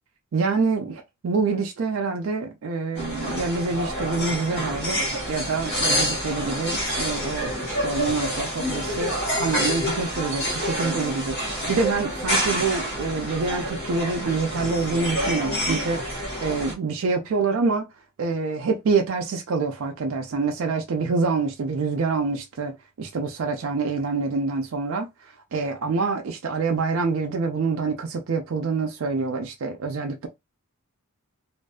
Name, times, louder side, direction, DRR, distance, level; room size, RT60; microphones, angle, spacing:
voice 1, 0.3-5.0 5.3-17.9 18.2-25.1 25.5-30.3, right 4 dB, 65° right, 0.4 m, -26 dB
sound 1, 2.9-16.7, equal, 50° left, 1.0 m, -27 dB
2.5 x 2.3 x 2.2 m
head